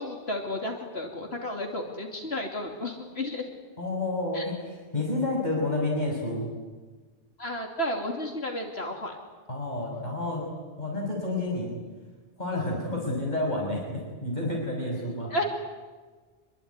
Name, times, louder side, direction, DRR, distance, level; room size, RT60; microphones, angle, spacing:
voice 1, 0.0-3.4 4.3-4.4 7.4-9.1 15.3-15.4, left 1 dB, 75° left, 3 dB, 3.1 m, -32 dB
voice 2, 3.8-6.5 9.5-10.5 10.8-11.7 12.4-15.3, left 2 dB, 40° left, -1 dB, 6.5 m, -30 dB
27.0 x 22.5 x 9.7 m, 1.4 s
omnidirectional pair, 1.1 m